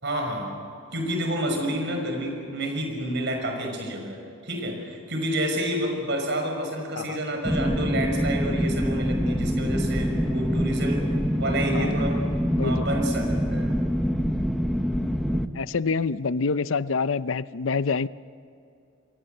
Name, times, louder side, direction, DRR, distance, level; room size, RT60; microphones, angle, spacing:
voice 1, 0.0-0.6 0.9-11.0 11.3-12.2 12.6-13.7, right 1 dB, 60° right, 3 dB, 5.8 m, -29 dB
sound 1, 7.4-15.4, equal, ahead, 0.9 m, -25 dB
voice 2, 12.6-12.9 15.5-18.1, left 4 dB, 75° left, 16 dB, 0.6 m, -26 dB
28.0 x 22.5 x 6.8 m, 2.5 s
head